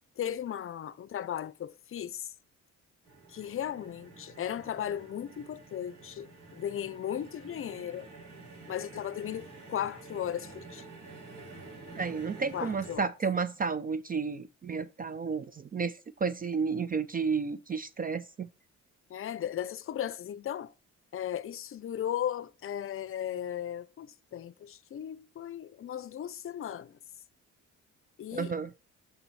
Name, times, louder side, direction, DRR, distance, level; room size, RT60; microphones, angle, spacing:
voice 1, 0.2-2.3 3.3-8.1 8.7-10.9 12.5-13.1 19.1-20.7 21.1-27.0 28.2-28.5, left 10 dB, 45° left, 0.6 m, -36 dB
sound 1, 3.0-13.0, right 3 dB, 60° right, 2.7 m, -49 dB
voice 2, 12.0-18.5 28.3-28.7, right 5 dB, 30° right, 0.4 m, -32 dB
7.8 x 4.1 x 4.1 m
cardioid pair, 90°, 30 cm